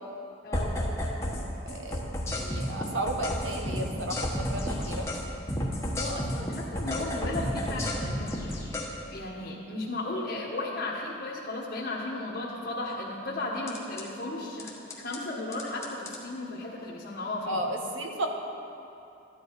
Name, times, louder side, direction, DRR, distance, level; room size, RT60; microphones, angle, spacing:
sound 1, 0.5-1.4 1.7-5.2 5.5-8.9 13.7-14.0 14.6-15.2 15.5-16.2, left 1 dB, 15° left, 1.2 m, -31 dB
voice 1, 1.7-5.1 17.5-18.3, right 1 dB, 75° right, 2 dB, 1.2 m, -34 dB
voice 2, 5.9-8.3 9.1-17.6, left 2 dB, 50° left, -6 dB, 1.3 m, -35 dB
13.5 x 10.0 x 4.7 m, 2.8 s
head